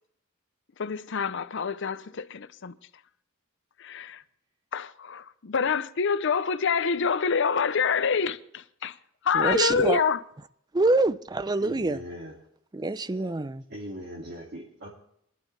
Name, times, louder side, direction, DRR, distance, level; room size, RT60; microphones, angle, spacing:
voice 1, 0.8-2.8 3.8-4.2 4.7-9.0 9.2-10.2, left 6 dB, 60° left, 0.7 m, -26 dB
voice 2, 9.3-10.0 10.7-12.0 12.7-13.6, right 2 dB, 20° right, 0.5 m, -25 dB
voice 3, 11.5-12.3 13.7-14.9, equal, 55° right, 2.6 m, -39 dB
22.0 x 11.5 x 3.3 m
head